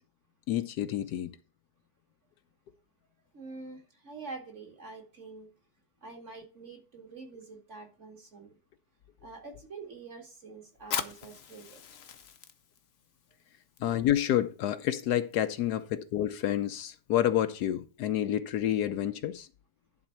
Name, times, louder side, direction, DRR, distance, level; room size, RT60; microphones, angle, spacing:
voice 1, 0.5-1.3 13.8-19.5, left 11 dB, 70° left, 1.1 m, -29 dB
voice 2, 3.3-5.5 6.0-8.5 9.2-11.8, right 4 dB, 45° right, 2.2 m, -46 dB
Fire, 10.8-18.0, left 8 dB, 55° left, 0.7 m, -43 dB
11.0 x 4.0 x 5.7 m
omnidirectional pair, 1.9 m